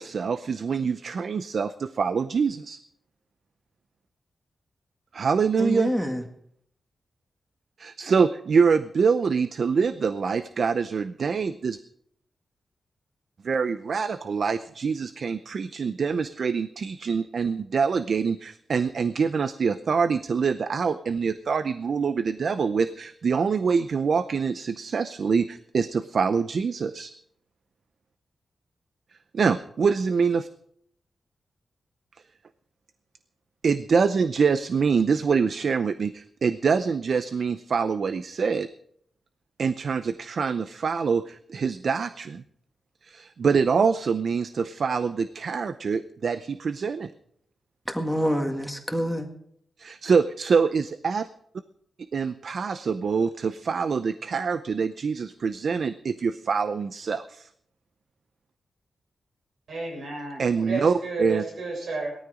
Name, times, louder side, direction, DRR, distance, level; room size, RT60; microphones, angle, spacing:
voice 1, 0.0-2.8 5.1-5.9 7.8-11.8 13.4-27.1 29.3-30.5 33.6-38.7 39.6-42.4 43.0-47.1 49.8-51.3 52.1-57.5 60.4-61.4, right 5 dB, 60° right, 12 dB, 0.6 m, -25 dB
voice 2, 5.6-6.2 47.9-49.3, equal, ahead, 4 dB, 1.9 m, -26 dB
voice 3, 59.7-62.2, right 2 dB, 80° right, 0 dB, 7.3 m, -32 dB
18.0 x 13.5 x 5.1 m, 0.68 s
wide cardioid pair, 100°, 0 cm